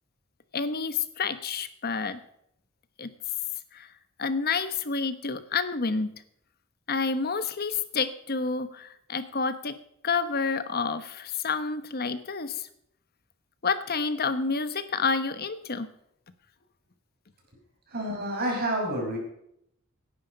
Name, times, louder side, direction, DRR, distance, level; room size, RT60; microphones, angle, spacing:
voice 1, 0.5-2.2 3.0-3.1 3.7-3.9 4.2-6.1 6.9-9.8 10.0-12.7 13.6-15.9, left 4 dB, 50° left, 12 dB, 1.1 m, -29 dB
voice 2, 17.9-19.2, right 1 dB, 50° right, 0 dB, 5.6 m, -29 dB
17.0 x 10.5 x 5.2 m, 0.73 s
head